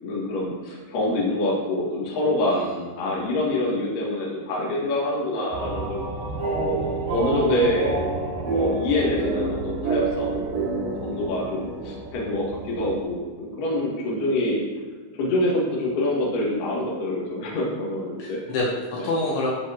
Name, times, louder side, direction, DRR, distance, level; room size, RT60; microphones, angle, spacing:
voice 1, 0.0-2.6 3.0-6.1 6.6-8.1 8.4-10.6 11.0-14.6 15.2-18.4 18.9-19.1, left 1 dB, 50° left, -5 dB, 3.2 m, -26 dB
voice 2, 2.5-3.2 18.2-19.5, left 2 dB, 75° left, -4 dB, 3.4 m, -28 dB
sound 1, 5.5-13.0, right 3 dB, 50° right, 3.0 m, -28 dB
13.5 x 6.7 x 3.0 m, 1.4 s
omnidirectional pair, 5.6 m